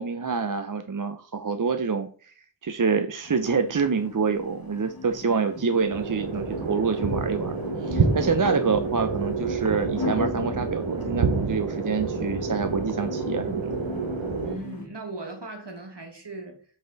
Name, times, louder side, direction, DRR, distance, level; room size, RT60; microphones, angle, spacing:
voice 1, 0.0-2.3 2.6-7.5 7.8-13.8, right 5 dB, 45° right, 0.6 m, -27 dB
sound 1, 3.2-14.9, left 4 dB, 50° left, 1.2 m, -38 dB
voice 2, 5.2-5.6 14.4-16.6, right 2 dB, 65° right, 2.1 m, -38 dB
sound 2, 5.9-14.6, right 4 dB, 90° right, 1.0 m, -28 dB
7.6 x 4.2 x 4.0 m
wide cardioid pair, 40°, 45 cm